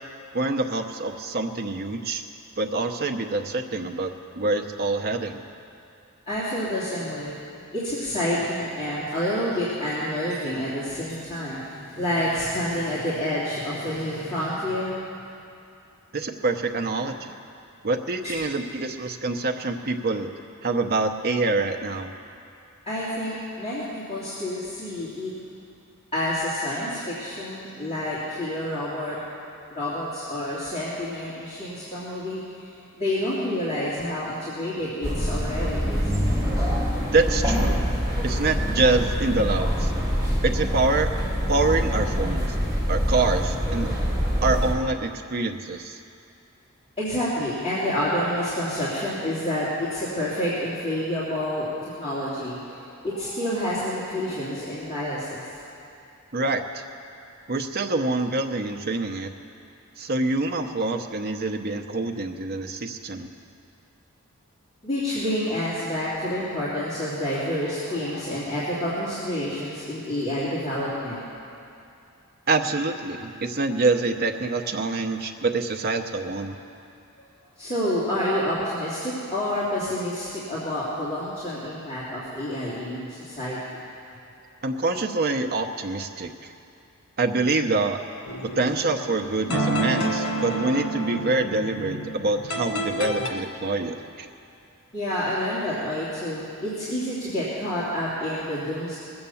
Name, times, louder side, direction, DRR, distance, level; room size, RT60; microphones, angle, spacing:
voice 1, 0.3-2.2 2.6-5.4 16.1-17.3 17.8-20.3 20.6-22.1 37.1-37.8 38.2-39.9 40.4-41.1 41.5-42.4 42.9-44.0 44.4-46.0 56.3-56.8 57.5-59.3 60.0-63.3 72.5-76.6 84.6-86.5 87.2-88.0 88.5-94.3, right 3 dB, 45° right, 5 dB, 0.8 m, -26 dB
voice 2, 6.3-7.4 7.7-15.0 18.2-18.4 22.9-25.3 26.1-29.2 29.7-32.7 32.9-36.2 47.0-55.6 64.8-71.4 77.2-77.3 77.6-83.6 94.9-99.0, left 1 dB, 25° left, -11 dB, 2.7 m, -28 dB
sound 1, 35.0-44.7, equal, 20° right, 3.0 m, -25 dB
sound 2, 88.3-93.3, right 1 dB, 90° left, 1.7 m, -29 dB
19.0 x 7.9 x 7.1 m, 2.6 s
head